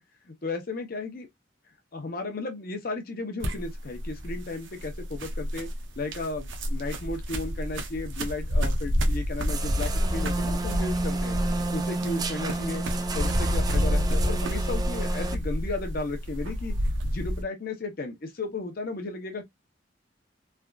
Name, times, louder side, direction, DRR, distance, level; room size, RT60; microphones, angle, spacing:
voice 1, 0.3-1.3 1.9-5.7 6.0-11.4 11.7-12.9 13.1-16.7 17.0-19.5, left 3 dB, 50° left, 0.7 m, -34 dB
sound 1, 3.4-17.4, equal, 85° right, 0.7 m, -29 dB
sound 2, 9.5-15.3, right 3 dB, 20° right, 0.3 m, -31 dB
3.3 x 2.4 x 2.3 m
head